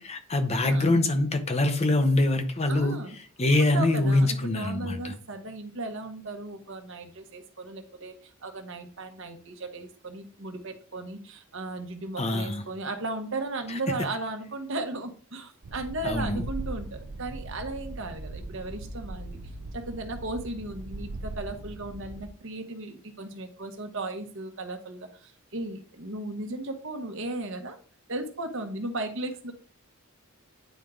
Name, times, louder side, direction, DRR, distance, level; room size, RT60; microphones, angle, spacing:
voice 1, 0.0-3.0 3.4-5.1 12.2-12.6 13.7-13.8 16.0-16.4, left 2 dB, 30° left, 0.8 m, -24 dB
voice 2, 0.6-1.0 2.7-3.2 3.6-8.2 8.4-19.4 19.7-27.8 28.1-29.5, right 2 dB, 60° right, 1.2 m, -36 dB
sound 1, 15.6-22.3, right 2 dB, 75° right, 0.7 m, -39 dB
9.2 x 4.5 x 3.8 m
head